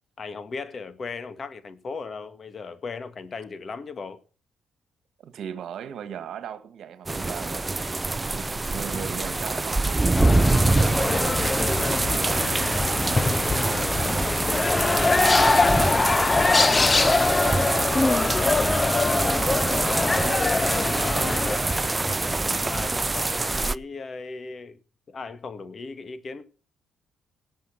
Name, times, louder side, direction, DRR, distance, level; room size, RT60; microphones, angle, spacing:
voice 1, 0.2-4.2 15.4-15.5 19.8-20.2 20.5-24.8 25.1-26.4, left 4 dB, 40° left, 1.8 m, -37 dB
voice 2, 5.2-7.7 8.2-11.3 11.8-14.6 15.2-15.6 16.8-18.4 20.0-21.4, right 9 dB, 70° right, 1.9 m, -39 dB
sound 1, 7.1-23.8, right 2 dB, 20° right, 0.5 m, -25 dB
sound 2, 10.2-21.6, left 3 dB, 25° left, 0.6 m, -23 dB
18.0 x 7.5 x 5.9 m
cardioid pair, 90°, 0 cm